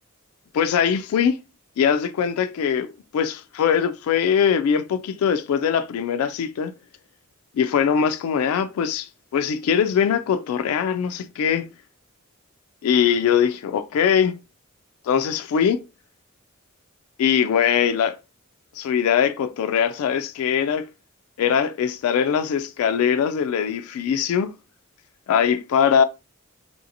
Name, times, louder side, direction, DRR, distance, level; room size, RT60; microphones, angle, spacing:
voice 1, 0.5-1.4 1.8-6.7 7.6-11.7 12.8-14.4 15.1-15.8 17.2-18.2 18.8-20.9 21.4-24.6 25.3-26.0, left 7 dB, 90° left, 0.3 m, -21 dB
3.2 x 2.7 x 2.6 m
head